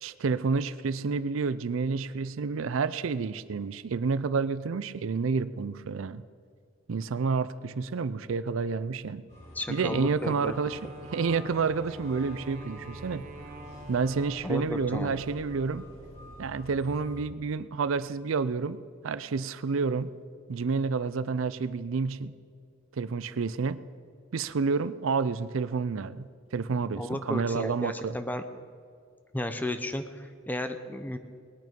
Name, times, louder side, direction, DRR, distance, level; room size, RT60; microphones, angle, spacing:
voice 1, 0.0-6.2 6.9-9.2 9.7-10.8 11.1-13.3 13.9-15.9 16.4-18.8 19.0-20.1 20.5-22.3 22.9-23.8 24.3-28.2, right 4 dB, 75° right, 16 dB, 0.5 m, -29 dB
sound 1, 9.3-17.2, equal, 35° left, 4.5 m, -47 dB
voice 2, 9.5-10.5 10.8-10.9 14.4-15.2 27.0-28.4 29.3-31.2, left 1 dB, 10° left, 8 dB, 0.6 m, -33 dB
Wind instrument woodwind instrument, 10.4-14.7, right 1 dB, 40° right, 1.5 m, -47 dB
20.0 x 9.4 x 5.2 m, 2.3 s
head